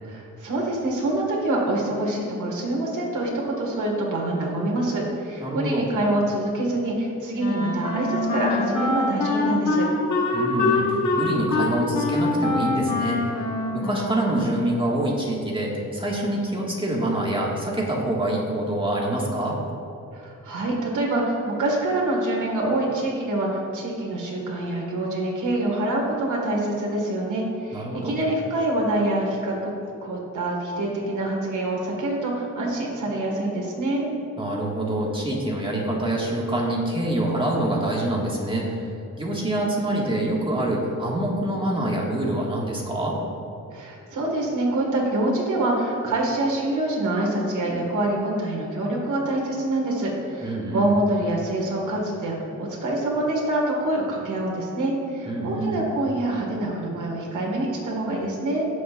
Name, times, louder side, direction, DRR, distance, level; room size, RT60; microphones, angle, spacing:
voice 1, 0.0-9.9 20.1-29.7 30.0-34.1 43.7-58.7, right 1 dB, 80° right, -2 dB, 1.9 m, -26 dB
voice 2, 5.4-5.9 10.3-13.2 13.7-19.6 27.7-28.2 34.4-38.8 39.2-43.2 50.4-50.9 55.3-55.8, right 1 dB, 15° right, -3 dB, 1.9 m, -26 dB
Wind instrument woodwind instrument, 7.4-14.8, left 2 dB, 75° left, 1.4 m, -25 dB
17.5 x 6.4 x 2.5 m, 2.7 s
wide cardioid pair, 100°, 30 cm